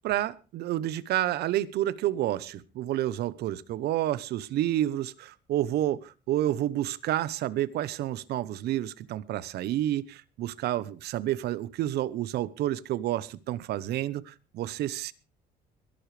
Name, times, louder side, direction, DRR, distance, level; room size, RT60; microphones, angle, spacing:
voice 1, 0.0-15.1, right 13 dB, 75° right, 0.9 m, -29 dB
22.0 x 12.0 x 3.3 m
cardioid pair, 110°, 17 cm